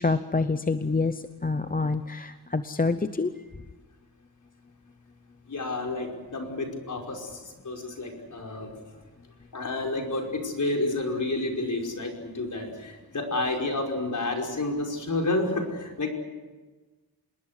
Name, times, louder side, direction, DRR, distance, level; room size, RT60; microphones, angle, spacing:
voice 1, 0.0-3.3, left 3 dB, 20° left, 10 dB, 0.8 m, -27 dB
voice 2, 5.5-8.7 9.5-16.1, left 2 dB, 50° left, 1 dB, 5.3 m, -30 dB
27.0 x 20.5 x 8.2 m, 1.3 s
wide cardioid pair, 115°, 39 cm